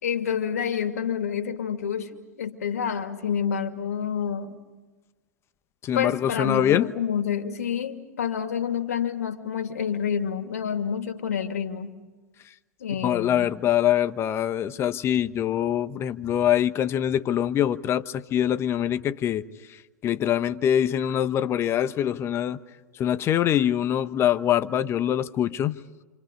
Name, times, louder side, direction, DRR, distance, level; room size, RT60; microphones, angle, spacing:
voice 1, 0.0-4.6 5.9-11.9 12.8-13.5, left 8 dB, 75° left, 2.6 m, -28 dB
voice 2, 5.8-6.9 13.0-19.4 20.0-22.6 23.0-25.8, left 10 dB, 30° left, 1.2 m, -24 dB
29.0 x 27.5 x 5.4 m
hypercardioid pair, 105°, 8 cm